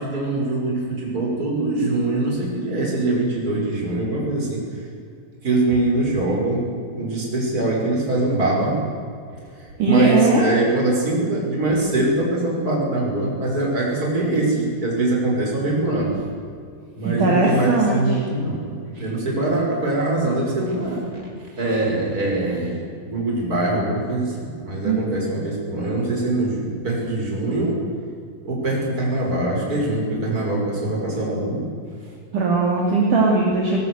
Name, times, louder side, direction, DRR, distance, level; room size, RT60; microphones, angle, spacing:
voice 1, 0.0-4.6 5.4-6.7 6.9-8.8 9.8-16.2 17.0-18.7 18.9-21.3 21.6-22.8 23.1-27.8 28.4-31.7, right 2 dB, 20° right, -2 dB, 6.2 m, -23 dB
voice 2, 9.8-10.4 17.0-18.0 24.8-25.0 32.3-33.8, right 3 dB, 50° right, -3 dB, 4.0 m, -19 dB
21.0 x 19.5 x 8.1 m, 2.3 s
omnidirectional pair, 4.9 m